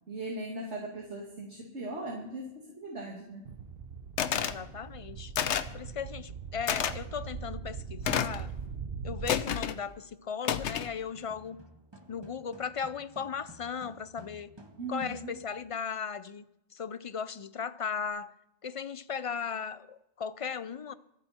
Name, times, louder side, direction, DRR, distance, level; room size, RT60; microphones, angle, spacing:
voice 1, 0.1-3.5 14.8-15.3, right 2 dB, 75° right, -2 dB, 2.6 m, -39 dB
sound 1, 3.4-9.3, right 6 dB, 60° right, 0.9 m, -41 dB
sound 2, 4.2-4.6 5.3-5.8 6.7-6.9 8.0-8.4 9.3-9.8 10.4-10.9, left 8 dB, 75° left, 1.1 m, -30 dB
voice 2, 4.3-5.3 5.7-8.5 9.0-11.6 12.1-14.5 14.9-16.4 16.7-18.3 18.6-20.9, left 6 dB, 50° left, 15 dB, 0.4 m, -37 dB
sound 3, 11.1-15.7, right 1 dB, 20° right, 1.8 m, -53 dB
26.0 x 9.0 x 4.4 m, 0.88 s
omnidirectional pair, 1.2 m